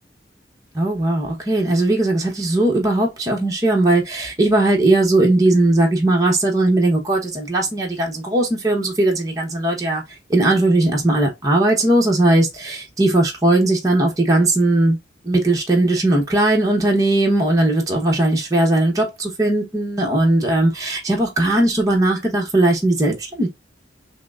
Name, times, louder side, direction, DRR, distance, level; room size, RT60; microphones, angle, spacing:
voice 1, 0.7-10.0 10.3-15.0 15.2-23.5, right 2 dB, 20° right, 0.9 m, -18 dB
5.8 x 2.0 x 2.3 m
head